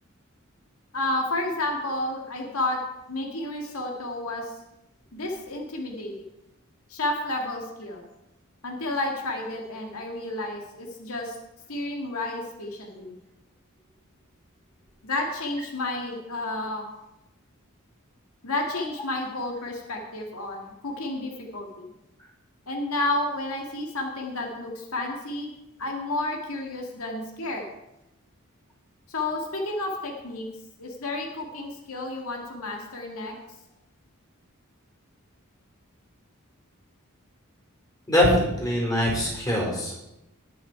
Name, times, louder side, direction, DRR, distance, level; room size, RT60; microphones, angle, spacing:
voice 1, 0.9-2.8 3.1-4.5 5.1-6.1 6.9-8.0 8.6-11.4 11.7-13.1 15.0-16.9 18.4-21.9 22.7-25.5 25.8-27.6 29.1-30.5 30.8-33.3, left 2 dB, 90° left, 1 dB, 2.0 m, -31 dB
voice 2, 38.1-40.0, left 1 dB, 20° left, -2 dB, 4.5 m, -23 dB
19.5 x 6.6 x 4.7 m, 0.91 s
head